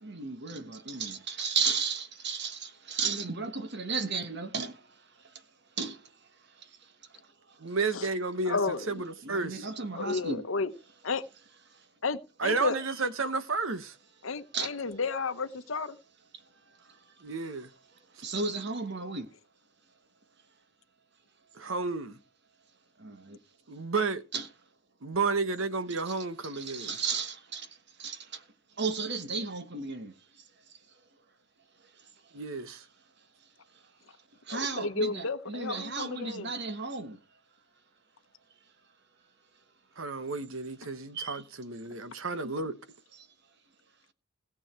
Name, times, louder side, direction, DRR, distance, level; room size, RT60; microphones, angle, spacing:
voice 1, 0.0-4.7 5.8-6.0 9.2-10.5 12.8-12.9 14.5-14.7 18.2-19.3 23.0-23.4 24.3-24.5 26.1-26.2 26.4-27.7 28.0-28.2 28.8-30.1 34.5-37.2 41.1-41.4, right 5 dB, 55° right, 1.4 m, -34 dB
voice 2, 7.6-9.7 12.4-13.9 17.2-17.7 21.5-22.2 23.7-24.2 25.0-27.0 32.3-32.8 40.0-42.7, right 4 dB, 70° right, 1.2 m, -32 dB
voice 3, 8.5-8.9 9.9-10.7 11.0-11.2 12.0-12.8 14.2-15.9 34.5-36.5, left 4 dB, 65° left, 1.0 m, -32 dB
17.0 x 7.2 x 4.4 m
head